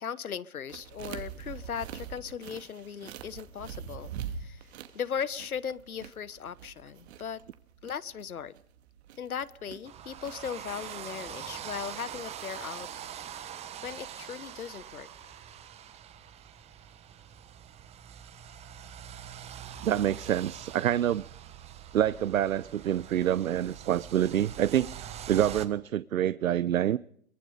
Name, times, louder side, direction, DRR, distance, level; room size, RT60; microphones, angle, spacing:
voice 1, 0.0-4.1 4.4-4.6 4.9-7.4 7.8-8.5 9.2-12.9 13.4-13.5 13.8-15.1, left 7 dB, 80° left, 1.3 m, -38 dB
sound 1, 0.7-12.9, right 8 dB, 50° right, 2.4 m, -45 dB
sound 2, 9.8-25.7, right 9 dB, 15° right, 1.2 m, -44 dB
voice 2, 19.8-21.2 21.9-27.0, right 11 dB, 70° right, 0.7 m, -27 dB
24.0 x 21.5 x 5.0 m
hypercardioid pair, 130°, 43 cm